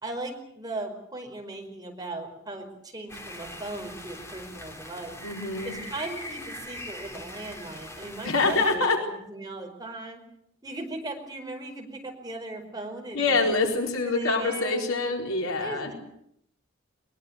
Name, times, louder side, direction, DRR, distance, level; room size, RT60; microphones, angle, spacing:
voice 1, 0.0-5.1 5.6-8.8 9.2-10.2 10.6-13.3 13.8-15.0 15.6-15.9, right 2 dB, 20° right, 2 dB, 4.8 m, -38 dB
sound 1, 3.1-8.8, left 1 dB, 15° left, 3.4 m, -42 dB
voice 2, 5.2-5.8 8.2-9.0 13.1-15.9, left 3 dB, 80° left, 2 dB, 4.3 m, -25 dB
22.0 x 21.5 x 8.2 m, 0.71 s
head